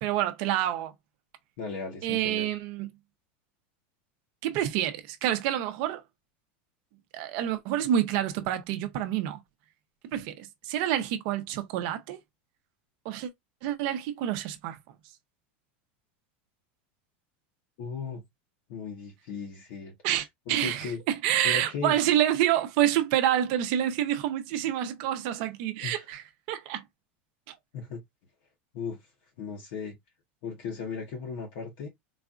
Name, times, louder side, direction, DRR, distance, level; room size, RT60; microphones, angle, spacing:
voice 1, 0.0-0.9 2.0-2.9 4.4-6.0 7.1-9.4 10.1-12.2 13.0-13.3 13.6-14.8 20.0-26.2 26.5-26.8 27.5-27.6, right 11 dB, 45° right, 0.6 m, -28 dB
voice 2, 1.6-2.5 17.8-18.2 18.7-19.9 20.5-21.0 21.4-22.0 25.8-26.0 27.7-28.0 28.7-29.1 29.4-29.9 30.4-31.9, left 5 dB, 50° left, 0.9 m, -36 dB
4.0 x 2.4 x 2.3 m
supercardioid pair, 175°, 6 cm